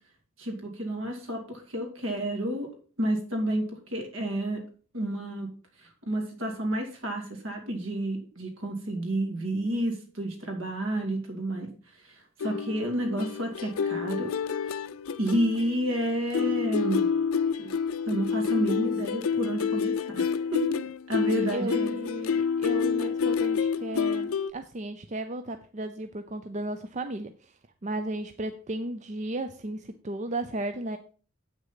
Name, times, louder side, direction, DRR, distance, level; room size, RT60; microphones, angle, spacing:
voice 1, 0.4-2.7 3.0-4.6 4.9-5.5 5.8-11.7 12.4-14.3 14.6-14.8 15.2-17.1 17.6-17.7 18.1-20.3 20.5-20.8 21.1-21.9, right 1 dB, 70° right, 2 dB, 2.6 m, -30 dB
sound 1, 12.4-16.0 16.3-24.5, left 6 dB, 90° left, 0.4 m, -28 dB
voice 2, 21.4-27.5 27.8-31.0, right 1 dB, 35° right, 8 dB, 0.5 m, -34 dB
8.2 x 6.5 x 5.7 m, 0.40 s
head